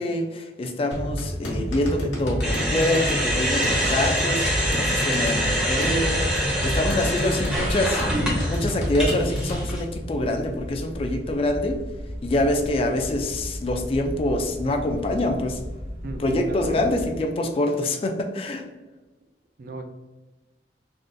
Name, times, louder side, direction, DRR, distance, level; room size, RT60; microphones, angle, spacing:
voice 1, 0.0-4.5 4.8-8.0 8.5-11.8 12.2-15.6 16.2-18.6, left 1 dB, 30° left, 4 dB, 0.3 m, -25 dB
sound 1, 0.9-9.6, equal, 85° left, 0.9 m, -28 dB
sound 2, 2.4-9.8, equal, 5° right, 0.6 m, -26 dB
sound 3, 5.3-17.2, equal, 85° right, 0.8 m, -36 dB
voice 2, 16.0-16.8 19.6-19.8, right 2 dB, 50° right, 6 dB, 0.4 m, -35 dB
3.7 x 2.4 x 2.5 m, 1.2 s
head